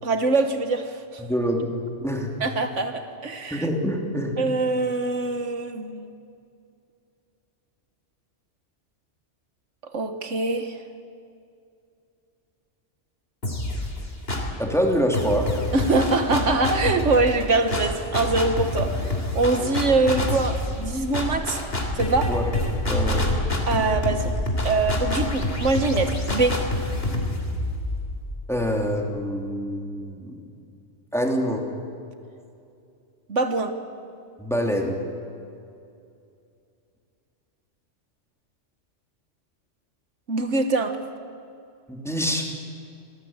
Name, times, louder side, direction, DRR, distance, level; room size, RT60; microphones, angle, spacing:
voice 1, 0.0-1.2 2.4-3.7 4.4-6.1 9.8-10.7 15.7-21.6 22.0-22.3 23.7-24.3 24.6-26.6 33.3-33.8 40.3-41.0, right 3 dB, 80° right, 7 dB, 1.8 m, -23 dB
voice 2, 1.2-1.7 2.0-2.3 3.5-4.5 14.6-15.5 19.6-19.7 22.3-22.5 22.9-23.3 28.5-30.4 31.1-31.7 34.4-35.0 41.9-42.5, equal, ahead, 1 dB, 3.3 m, -25 dB
sound 1, 13.4-14.6 15.1-28.8, left 1 dB, 55° left, 3.6 m, -28 dB
Walk footsteps, 20.1-27.1, left 1 dB, 90° left, 4.3 m, -32 dB
27.0 x 19.5 x 9.0 m, 2.5 s
omnidirectional pair, 1.2 m